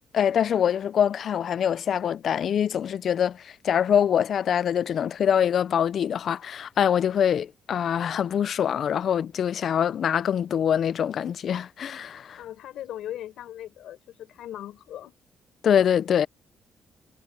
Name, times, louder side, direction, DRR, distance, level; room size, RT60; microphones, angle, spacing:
voice 1, 0.1-12.4 15.6-16.3, left 8 dB, 60° left, 0.4 m, -24 dB
voice 2, 12.4-15.1, left 12 dB, 90° left, 6.3 m, -39 dB
cardioid pair, 115°, 0 cm